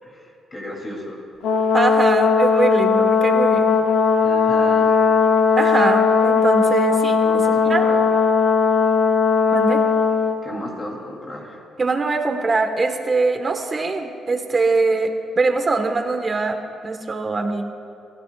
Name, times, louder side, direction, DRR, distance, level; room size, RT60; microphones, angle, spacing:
voice 1, 0.0-1.2 4.1-4.9 7.2-8.0 10.4-11.6, left 1 dB, 35° left, -2 dB, 3.3 m, -34 dB
Brass instrument, 1.4-10.4, left 5 dB, 80° left, 0.9 m, -18 dB
voice 2, 1.7-3.7 5.6-7.8 9.5-9.8 11.8-17.6, right 3 dB, 30° right, 5 dB, 1.6 m, -22 dB
25.5 x 16.0 x 2.5 m, 2.6 s
cardioid pair, 90°, 0 cm